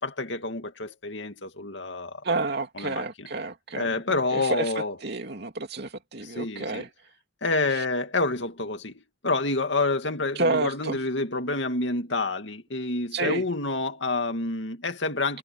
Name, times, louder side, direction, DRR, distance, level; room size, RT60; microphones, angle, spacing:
voice 1, 0.0-2.2 2.8-3.3 3.7-5.0 6.2-6.9 7.4-15.4, left 3 dB, 70° left, 2.5 m, -28 dB
voice 2, 2.2-4.0 4.3-4.7 5.0-6.9 10.4-11.0 13.1-13.4, right 3 dB, 60° right, 2.8 m, -29 dB
head